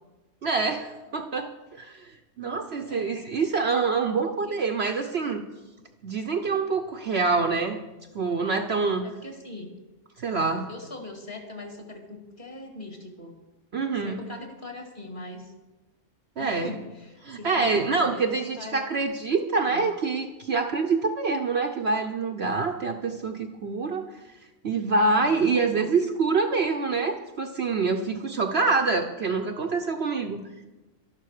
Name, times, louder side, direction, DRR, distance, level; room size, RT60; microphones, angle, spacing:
voice 1, 0.4-1.5 1.8-2.1 2.4-5.4 6.0-7.8 8.1-9.1 10.2-10.7 13.7-14.2 16.4-16.7 17.2-24.1 24.6-30.4, right 4 dB, 50° right, 4 dB, 1.0 m, -26 dB
voice 2, 9.0-9.7 10.7-13.3 14.0-15.5 16.4-18.8 19.6-19.9 25.2-25.9, left 2 dB, 35° left, 3 dB, 2.6 m, -41 dB
12.0 x 11.5 x 6.6 m, 1.1 s
omnidirectional pair, 1.5 m